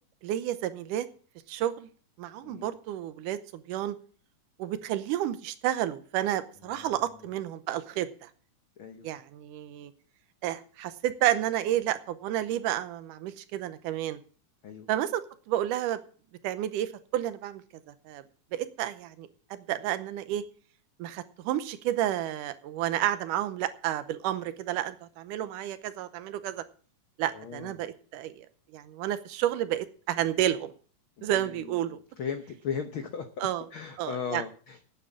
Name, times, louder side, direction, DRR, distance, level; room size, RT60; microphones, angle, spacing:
voice 1, 0.2-1.1 1.5-1.9 2.2-4.0 4.6-8.3 9.0-9.9 10.4-14.2 14.9-16.0 16.4-17.6 18.1-18.2 18.5-20.4 21.0-26.6 27.2-28.5 28.7-30.7 31.2-32.0 33.4-33.6 34.0-34.4, right 12 dB, 80° right, 13 dB, 2.3 m, -31 dB
voice 2, 8.8-9.1 14.6-14.9 27.3-27.7 31.2-34.9, left 7 dB, 75° left, 7 dB, 1.1 m, -37 dB
9.5 x 8.8 x 7.2 m, 0.43 s
omnidirectional pair, 3.7 m